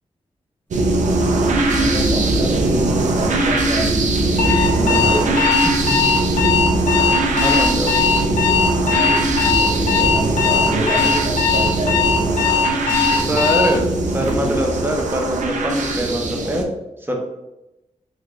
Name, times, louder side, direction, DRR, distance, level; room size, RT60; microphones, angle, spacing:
sound 1, 0.7-16.6, right 2 dB, 70° right, 0.5 m, -20 dB
sound 2, 0.9-12.6, equal, 15° left, 1.3 m, -33 dB
voice 1, 1.7-4.4 4.8-5.5 8.2-13.4, right 1 dB, 45° right, -3 dB, 1.5 m, -27 dB
Alarm, 4.4-13.8, left 7 dB, 70° left, 0.7 m, -19 dB
voice 2, 5.6-6.1 7.4-7.9 12.8-13.9 14.1-16.7 17.0-17.2, equal, 15° right, 1 dB, 0.8 m, -23 dB
3.3 x 3.2 x 2.4 m, 0.94 s
cardioid pair, 45°, 13 cm